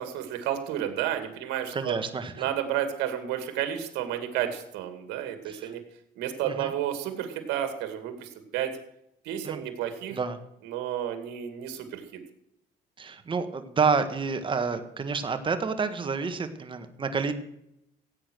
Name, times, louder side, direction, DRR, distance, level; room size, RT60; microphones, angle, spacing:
voice 1, 0.0-1.9 2.4-5.8 6.2-8.8 9.2-10.2 10.6-12.2, right 10 dB, 90° right, 7 dB, 2.3 m, -31 dB
voice 2, 1.7-2.3 5.4-5.7 6.5-6.7 9.4-9.6 10.1-10.4 13.0-17.3, right 5 dB, 30° right, 8 dB, 1.5 m, -29 dB
16.0 x 8.7 x 6.3 m, 0.80 s
cardioid pair, 110°, 17 cm